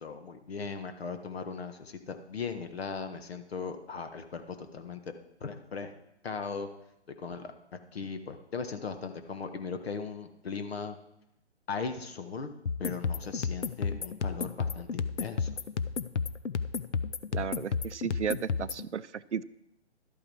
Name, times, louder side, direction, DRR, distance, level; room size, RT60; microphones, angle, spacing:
voice 1, 0.0-5.1 5.4-5.9 6.2-6.7 7.1-11.0 11.7-12.5 12.8-15.6, left 5 dB, 60° left, 8 dB, 1.5 m, -38 dB
sound 1, 12.7-18.9, left 5 dB, 80° left, 0.7 m, -32 dB
voice 2, 17.3-19.4, right 7 dB, 85° right, 16 dB, 0.6 m, -34 dB
12.5 x 8.7 x 4.8 m, 0.84 s
figure-of-eight pair, 145°, 35 cm